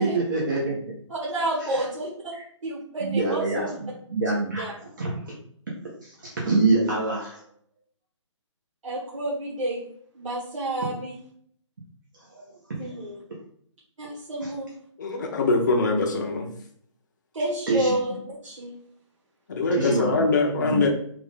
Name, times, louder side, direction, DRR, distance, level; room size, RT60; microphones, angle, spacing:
voice 1, 0.0-0.9 1.6-1.8 2.3-2.4 3.0-4.6 5.0-5.1 6.0-7.4 12.3-12.4 14.4-14.5 17.7-18.0 19.7-20.8, right 3 dB, 40° right, -4 dB, 0.7 m, -26 dB
voice 2, 1.1-2.1 2.6-3.8 4.6-4.7 8.8-9.9 10.1-11.1 12.7-13.2 14.0-14.7 17.3-18.1 18.4-18.7, right 1 dB, 85° right, -7 dB, 1.3 m, -29 dB
voice 3, 15.0-16.5 19.5-20.9, left 3 dB, 40° left, 2 dB, 0.6 m, -23 dB
3.4 x 2.4 x 3.6 m, 0.62 s
hypercardioid pair, 170°, 16 cm